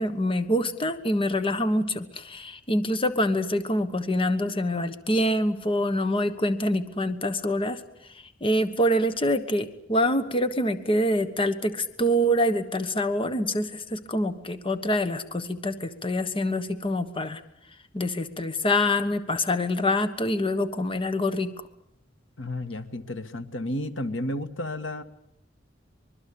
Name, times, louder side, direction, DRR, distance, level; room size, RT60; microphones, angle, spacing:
voice 1, 0.0-17.4 17.9-21.5, left 1 dB, 30° left, 10 dB, 1.3 m, -26 dB
voice 2, 22.4-25.0, left 1 dB, 80° left, 10 dB, 1.9 m, -32 dB
24.5 x 22.0 x 8.6 m, 0.77 s
head